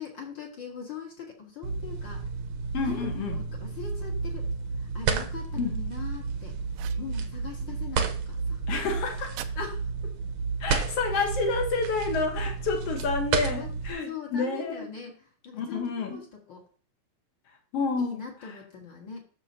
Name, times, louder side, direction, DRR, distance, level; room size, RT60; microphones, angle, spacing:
voice 1, 0.0-2.3 2.8-4.5 4.8-6.6 7.0-8.6 9.5-10.2 13.6-13.7 14.0-16.6 18.0-19.2, left 6 dB, 55° left, 1.3 m, -41 dB
sound 1, 1.6-13.9, right 5 dB, 70° right, 1.8 m, -31 dB
voice 2, 2.7-3.4 5.6-5.7 8.7-9.4 10.6-14.9 15.5-16.2 17.7-18.5, left 4 dB, 80° left, 1.3 m, -29 dB
sound 2, 6.7-7.1 9.4-9.6 11.1-11.6, right 13 dB, 85° right, 2.5 m, -43 dB
9.8 x 6.7 x 2.7 m
omnidirectional pair, 4.2 m